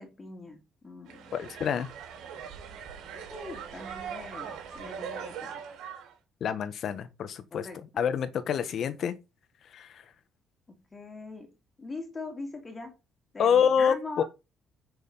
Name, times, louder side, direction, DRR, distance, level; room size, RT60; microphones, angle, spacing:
voice 1, 0.0-1.4 3.1-5.9 7.5-8.0 10.7-13.0 13.3-14.2, left 3 dB, 20° left, 2.8 m, -42 dB
sound 1, 1.1-6.1, right 7 dB, 85° right, 3.8 m, -41 dB
voice 2, 1.3-1.9 6.4-7.7 8.0-9.1 9.7-10.0 13.4-14.2, left 7 dB, 55° left, 1.4 m, -27 dB
8.8 x 6.4 x 5.6 m
cardioid pair, 125°, 0 cm